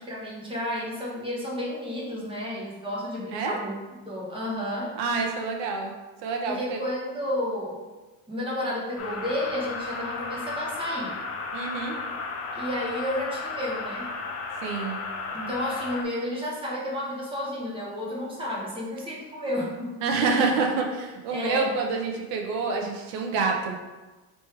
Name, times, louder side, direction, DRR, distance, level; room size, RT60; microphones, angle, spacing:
voice 1, 0.1-3.8 4.1-4.9 6.4-7.8 8.3-11.2 12.5-14.1 15.3-20.0 21.3-21.7, left 1 dB, 10° right, -5 dB, 1.0 m, -31 dB
voice 2, 5.0-5.9 6.2-6.8 11.5-12.0 14.6-15.0 20.0-23.8, right 4 dB, 85° right, 2 dB, 0.8 m, -27 dB
sound 1, 9.0-16.0, left 4 dB, 35° left, 0.5 m, -34 dB
3.2 x 3.2 x 4.4 m, 1.2 s
cardioid pair, 135°, 42 cm